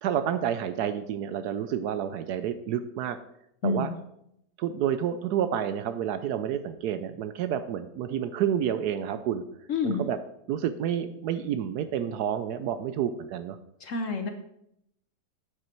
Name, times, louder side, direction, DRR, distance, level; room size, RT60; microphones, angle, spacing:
voice 1, 0.0-3.2 3.6-3.9 4.6-9.4 9.8-10.2 10.5-13.6, right 9 dB, 70° right, 11 dB, 1.0 m, -29 dB
voice 2, 3.6-3.9 9.7-10.0 13.8-14.3, left 4 dB, 55° left, 6 dB, 1.0 m, -28 dB
8.3 x 7.9 x 4.5 m, 0.77 s
omnidirectional pair, 1.9 m